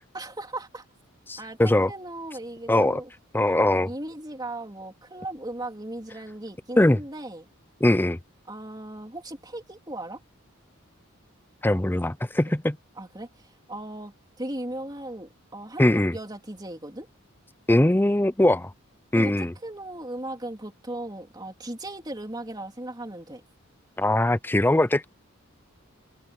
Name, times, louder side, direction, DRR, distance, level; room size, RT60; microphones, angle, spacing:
voice 1, 0.1-0.9 1.4-3.1 3.9-7.5 8.5-10.2 13.0-17.1 19.1-23.4, right 1 dB, 20° right, 3.7 m, -37 dB
voice 2, 1.3-1.9 2.7-3.0 3.3-3.9 6.8-7.0 7.8-8.2 11.6-12.8 15.8-16.1 17.7-18.7 19.1-19.5 24.0-25.1, left 1 dB, 10° left, 0.5 m, -21 dB
head